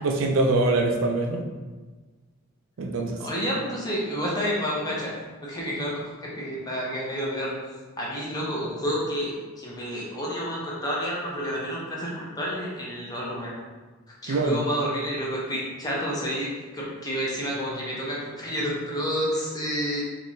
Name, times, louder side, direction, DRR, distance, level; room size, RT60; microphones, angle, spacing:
voice 1, 0.0-1.5 2.8-3.3 14.3-14.6, right 2 dB, 60° right, 2 dB, 0.4 m, -24 dB
voice 2, 3.2-5.1 5.4-7.5 8.0-13.5 14.2-20.0, equal, 15° left, -5 dB, 0.7 m, -29 dB
3.6 x 2.9 x 2.6 m, 1.3 s
head